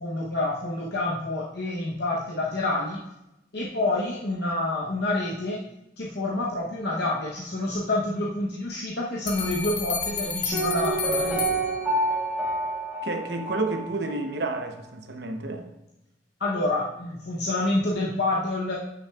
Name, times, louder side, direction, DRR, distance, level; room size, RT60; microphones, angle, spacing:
voice 1, 0.0-3.0 3.5-5.6 6.0-11.6 16.4-18.7, left 2 dB, 65° left, 0.8 m, -28 dB
sound 1, 9.3-12.3, left 4 dB, 90° left, 1.1 m, -32 dB
Piano, 10.5-14.3 14.6-14.7, right 2 dB, ahead, 2.5 m, -28 dB
voice 2, 13.0-15.7, right 3 dB, 60° right, 0.8 m, -30 dB
9.4 x 6.1 x 2.3 m
head